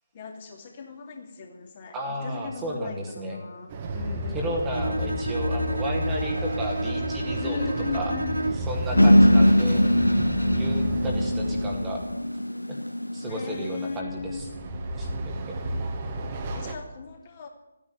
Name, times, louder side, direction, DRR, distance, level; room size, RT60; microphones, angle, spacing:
voice 1, 0.1-4.9 7.4-10.0 10.7-11.7 13.3-14.4 15.4-15.5 16.3-17.5, left 5 dB, 30° left, 2 dB, 2.9 m, -37 dB
voice 2, 1.9-3.4 4.3-7.6 7.9-8.1 8.7-9.8 10.5-12.0 12.7-12.8 13.1-14.4 14.9-15.1, right 1 dB, 10° right, -1 dB, 2.0 m, -33 dB
Train, 3.7-12.2 14.0-16.7, equal, 25° right, 1.7 m, -32 dB
Bowed string instrument, 4.7-8.8, right 2 dB, 85° right, 1.0 m, -31 dB
sound 1, 9.0-14.0, equal, 85° left, 0.7 m, -21 dB
14.0 x 10.0 x 9.4 m, 0.95 s
figure-of-eight pair, 150°, 0 cm